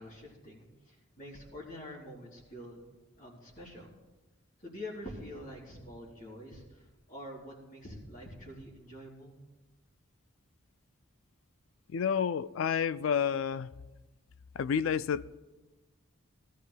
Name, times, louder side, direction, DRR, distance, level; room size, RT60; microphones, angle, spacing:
voice 1, 0.0-2.9 3.2-3.9 4.6-9.4, left 1 dB, 40° left, -3 dB, 3.7 m, -46 dB
voice 2, 11.9-13.7 14.5-15.4, left 7 dB, 75° left, 16 dB, 0.4 m, -30 dB
21.0 x 13.5 x 2.2 m, 1.1 s
head